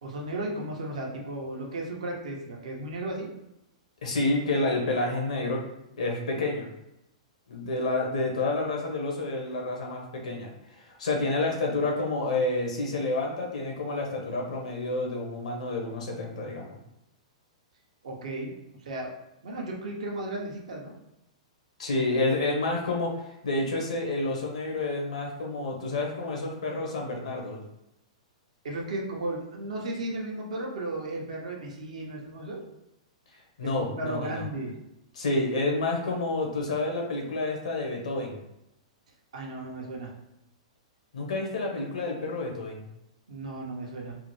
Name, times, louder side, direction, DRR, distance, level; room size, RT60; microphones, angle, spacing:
voice 1, 0.0-3.3 18.0-18.5 18.8-19.1 19.4-20.9 28.6-32.6 33.6-34.7 39.3-40.1 43.3-44.2, right 2 dB, 75° right, -1 dB, 0.8 m, -35 dB
voice 2, 4.0-5.6 6.0-6.7 7.5-16.8 21.8-27.6 33.6-34.4 35.1-38.4 41.1-42.8, left 2 dB, 80° left, 1 dB, 1.1 m, -29 dB
3.6 x 2.2 x 3.1 m, 0.87 s
hypercardioid pair, 125°, 4 cm